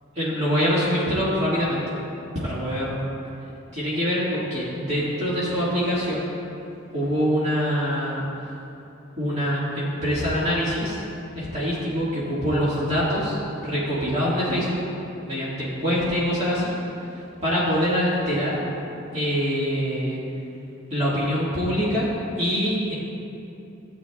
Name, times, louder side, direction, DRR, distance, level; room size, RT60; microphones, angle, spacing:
voice 1, 0.2-2.0 2.4-3.0 3.7-6.3 6.9-8.6 9.2-11.0 11.3-14.8 15.2-16.7 17.1-18.6 19.1-20.2 20.9-22.9, equal, 35° right, -9 dB, 1.9 m, -24 dB
15.5 x 8.6 x 2.3 m, 2.8 s
head